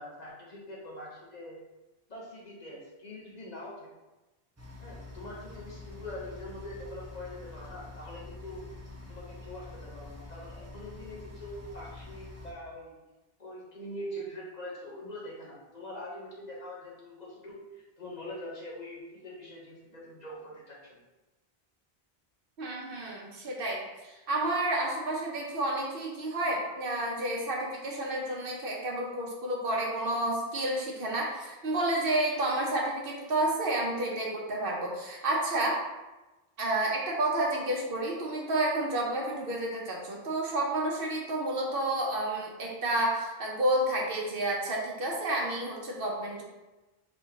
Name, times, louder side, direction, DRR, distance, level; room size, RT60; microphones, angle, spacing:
voice 1, 0.0-1.6 2.1-3.9 4.8-8.6 9.1-13.0 13.4-21.0, left 1 dB, 45° left, -4 dB, 0.9 m, -43 dB
sound 1, 4.6-12.5, left 2 dB, 15° right, 0.6 m, -46 dB
voice 2, 22.6-35.8 36.6-46.4, right 1 dB, 65° right, -1 dB, 1.0 m, -30 dB
4.4 x 3.4 x 2.8 m, 1.1 s
omnidirectional pair, 1.1 m